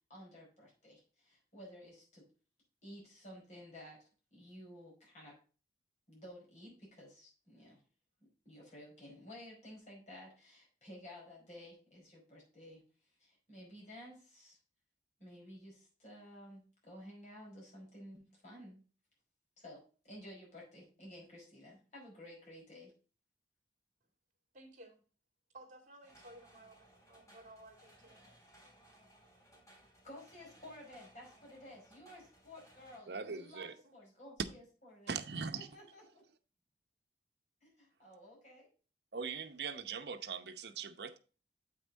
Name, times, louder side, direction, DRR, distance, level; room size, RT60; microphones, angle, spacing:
voice 1, 0.1-2.3 2.8-5.4 6.1-7.8 8.4-14.6 15.2-18.8 19.6-22.9 30.0-36.2 37.6-38.7, equal, 40° left, 4.9 m, -54 dB
voice 2, 24.5-25.0 25.5-28.3, right 1 dB, 45° right, 2.3 m, -56 dB
sound 1, 26.0-33.0, right 1 dB, 20° left, 3.1 m, -63 dB
voice 3, 33.1-33.7 35.1-35.7 39.1-41.2, right 5 dB, 70° right, 0.8 m, -41 dB
8.3 x 5.9 x 3.9 m
head